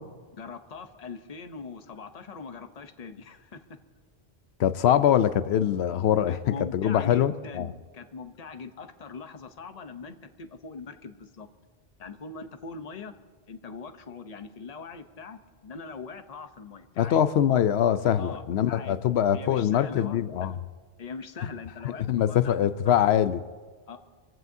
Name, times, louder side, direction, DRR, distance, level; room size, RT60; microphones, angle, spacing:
voice 1, 0.3-3.6 6.3-11.5 12.0-13.1 13.5-17.2 18.2-19.0 19.3-20.6 21.0-22.7 23.9-24.0, left 4 dB, 40° left, 8 dB, 0.9 m, -41 dB
voice 2, 4.6-6.4 6.7-7.7 17.0-20.6 22.1-23.4, left 10 dB, 90° left, 12 dB, 0.9 m, -23 dB
24.0 x 15.5 x 2.7 m, 1.5 s
omnidirectional pair, 1.1 m